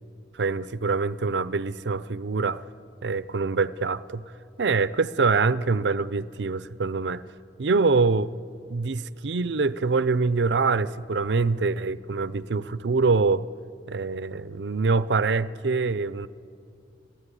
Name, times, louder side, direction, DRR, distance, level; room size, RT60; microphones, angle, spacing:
voice 1, 0.3-2.6 3.0-4.2 4.6-7.2 7.6-8.3 8.7-13.4 13.9-16.3, right 4 dB, 85° right, 16 dB, 0.6 m, -24 dB
23.5 x 15.0 x 9.9 m, 2.5 s
head